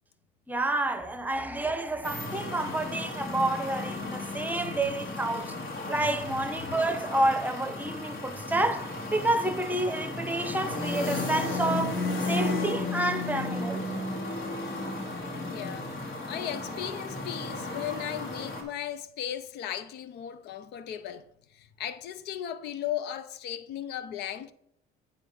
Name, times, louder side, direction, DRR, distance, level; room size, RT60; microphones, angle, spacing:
voice 1, 0.5-5.5 5.9-13.9, right 2 dB, 10° right, 0.8 m, -29 dB
sound 1, 2.0-18.6, left 2 dB, 65° left, 2.4 m, -34 dB
voice 2, 4.3-5.0 5.3-6.1 15.4-15.9 16.3-21.2 21.5-24.5, left 10 dB, 80° left, 0.6 m, -37 dB
10.0 x 3.4 x 5.5 m
cardioid pair, 110°, 17 cm